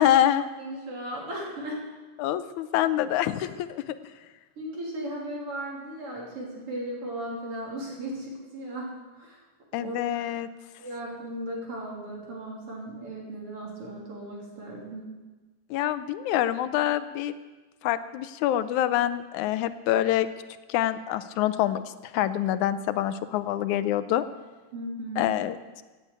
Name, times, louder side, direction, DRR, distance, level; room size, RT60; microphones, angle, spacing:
voice 1, 0.0-0.5 2.2-3.8 9.7-10.5 15.7-17.3 17.8-20.3 20.7-21.8 22.1-24.2 25.2-25.8, left 12 dB, 85° left, 13 dB, 2.1 m, -26 dB
voice 2, 0.6-1.9 4.6-9.4 9.8-10.0 10.8-15.1 24.7-25.2, right 1 dB, 50° right, -2 dB, 4.0 m, -36 dB
17.5 x 8.3 x 8.3 m, 1.2 s
omnidirectional pair, 3.3 m